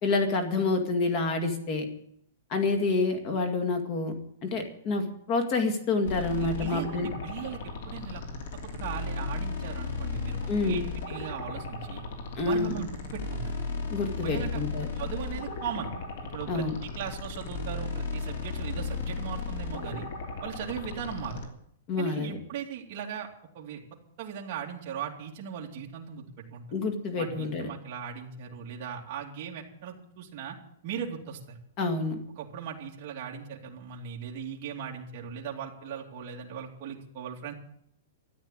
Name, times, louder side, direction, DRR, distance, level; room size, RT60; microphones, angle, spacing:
voice 1, 0.0-1.9 2.5-4.1 4.4-7.1 10.5-10.9 12.4-12.8 13.9-14.9 16.5-16.8 21.9-22.4 26.7-27.7 31.8-32.2, left 3 dB, 25° left, 6 dB, 2.1 m, -28 dB
sound 1, 6.0-21.4, left 4 dB, 50° left, 2.9 m, -35 dB
voice 2, 6.4-8.2 8.6-12.0 12.4-13.6 14.2-14.6 15.0-15.9 16.2-20.1 20.4-21.5 22.0-23.3 23.5-23.8 24.2-26.6 27.2-30.6 30.8-31.6 32.4-37.5, right 8 dB, 30° right, -2 dB, 2.7 m, -38 dB
13.5 x 9.2 x 8.9 m, 0.71 s
hypercardioid pair, 175°, 0 cm